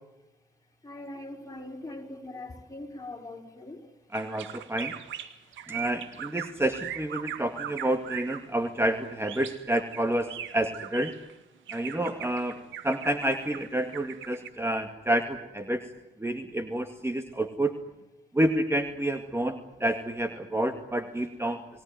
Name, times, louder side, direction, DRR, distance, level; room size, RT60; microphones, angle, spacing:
voice 1, 0.8-4.2 5.3-5.9 16.9-17.1, left 2 dB, 15° left, 6.0 m, -42 dB
voice 2, 4.1-4.9 5.7-11.1 11.7-15.9 16.2-17.7 18.3-21.8, right 1 dB, 15° right, 2.0 m, -29 dB
sound 1, 4.1-8.4 9.2-11.3 11.7-14.5, right 10 dB, 80° right, 1.9 m, -40 dB
29.5 x 18.0 x 9.4 m
supercardioid pair, 50°, 20 cm